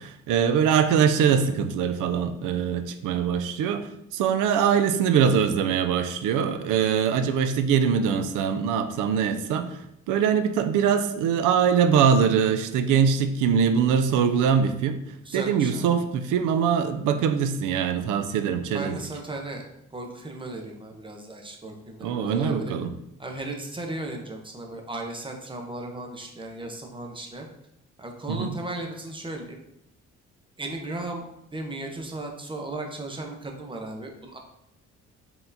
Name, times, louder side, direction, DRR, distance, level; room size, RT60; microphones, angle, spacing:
voice 1, 0.0-9.8 10.1-15.0 15.3-19.0 22.0-22.9 28.3-28.5, right 7 dB, 85° right, 9 dB, 0.5 m, -23 dB
voice 2, 15.2-16.0 18.7-19.6 19.9-22.7 23.2-27.5 28.0-29.6 30.6-31.3 31.5-34.4, right 2 dB, 15° right, 2 dB, 0.8 m, -36 dB
4.4 x 3.7 x 2.7 m, 0.80 s
cardioid pair, 90°, 30 cm